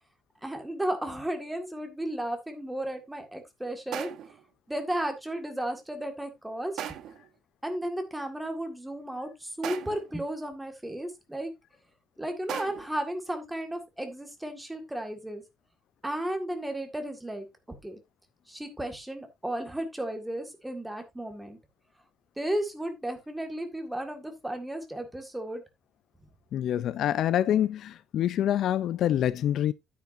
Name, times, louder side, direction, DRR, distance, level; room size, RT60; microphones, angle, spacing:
voice 1, 0.4-4.1 4.7-6.8 7.6-11.5 12.2-15.4 16.0-18.0 18.5-21.6 22.4-25.6, right 1 dB, 5° right, 1.8 m, -34 dB
sound 1, 1.6-1.7 3.9-4.5 6.8-7.3 9.6-10.2 12.5-13.1, right 10 dB, 65° right, 1.0 m, -38 dB
voice 2, 26.5-29.7, left 11 dB, 60° left, 0.4 m, -26 dB
9.5 x 9.3 x 2.6 m
cardioid pair, 155°, 0 cm